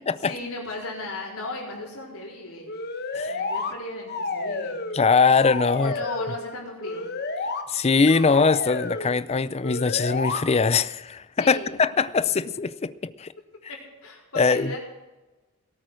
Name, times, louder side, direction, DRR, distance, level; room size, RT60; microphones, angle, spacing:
voice 1, 0.2-2.7 3.2-4.8 5.8-7.1 11.4-11.8 13.7-14.8, left 2 dB, 75° left, 4.2 m, -36 dB
sound 1, 2.7-3.7 4.1-5.0 5.3-6.3 6.8-7.6 8.1-9.1 9.6-10.4, left 3 dB, 45° left, 1.2 m, -30 dB
voice 2, 4.9-5.9 7.7-12.9 13.2-13.3 14.3-14.7, left 4 dB, 30° left, 0.4 m, -21 dB
17.5 x 8.7 x 6.4 m
head